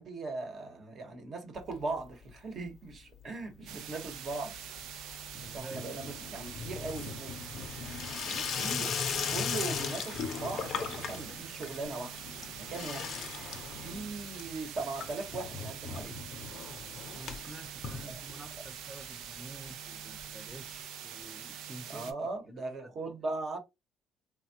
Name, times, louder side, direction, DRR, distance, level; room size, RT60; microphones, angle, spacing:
voice 1, 0.0-4.5 5.5-7.3 8.3-9.0 9.3-12.2 12.6-13.1 13.8-16.2 18.0-18.1 21.9-23.6, right 3 dB, 45° right, 1.0 m, -39 dB
Water tap faucet / Sink (filling or washing), 1.6-2.3 2.6-3.2 3.5-18.7 19.1-19.2 19.4-19.5 19.7-19.8 20.8-20.9, left 6 dB, 55° left, 0.5 m, -39 dB
sound 1, 3.7-22.1, right 8 dB, 80° right, 0.5 m, -44 dB
voice 2, 5.3-6.0 17.1-22.3 22.8-22.9, right 2 dB, 5° right, 0.5 m, -49 dB
3.4 x 2.2 x 2.7 m
cardioid pair, 120°, 0 cm